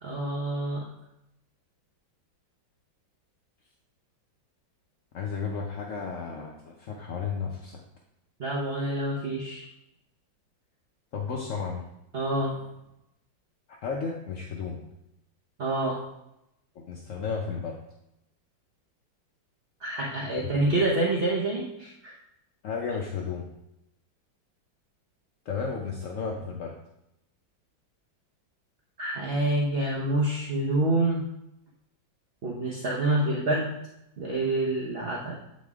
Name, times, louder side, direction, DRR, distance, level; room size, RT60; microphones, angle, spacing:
voice 1, 0.0-0.8 8.4-9.6 12.1-12.6 15.6-16.0 19.8-22.1 29.0-31.2 32.4-33.7 34.2-35.4, right 1 dB, 50° right, -3 dB, 0.7 m, -27 dB
voice 2, 5.1-7.8 11.1-11.8 13.8-14.8 16.8-17.7 20.4-20.7 22.6-23.5 25.5-26.7, left 5 dB, 65° left, 0 dB, 0.8 m, -33 dB
8.4 x 4.2 x 3.5 m, 0.85 s
omnidirectional pair, 2.1 m